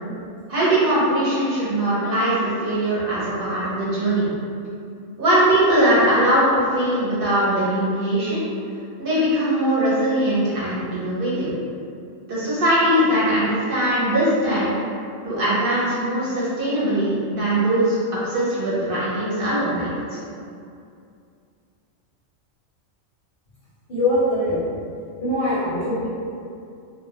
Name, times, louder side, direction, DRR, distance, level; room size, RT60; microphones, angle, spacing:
voice 1, 0.5-4.3 5.2-8.4 9.0-11.5 12.3-14.8 15.2-18.0 18.2-19.9, right 1 dB, 55° right, -9 dB, 0.7 m, -21 dB
voice 2, 23.9-24.6 25.2-26.1, left 1 dB, 55° left, -10 dB, 0.6 m, -22 dB
2.2 x 2.1 x 2.8 m, 2.4 s
omnidirectional pair, 1.3 m